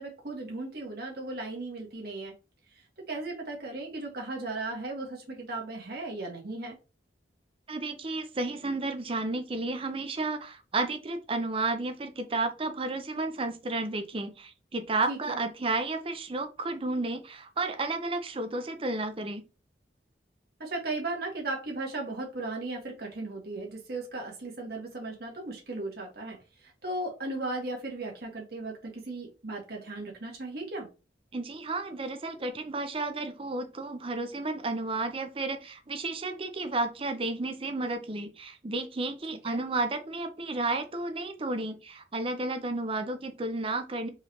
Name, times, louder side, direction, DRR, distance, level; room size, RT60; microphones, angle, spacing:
voice 1, 0.0-2.3 3.1-6.8 15.1-15.4 20.6-26.4 26.6-30.9 39.5-39.6, right 2 dB, 60° right, 1.7 m, -36 dB
voice 2, 7.7-19.4 31.3-44.1, right 2 dB, 30° right, 0.6 m, -32 dB
4.6 x 3.2 x 2.9 m
head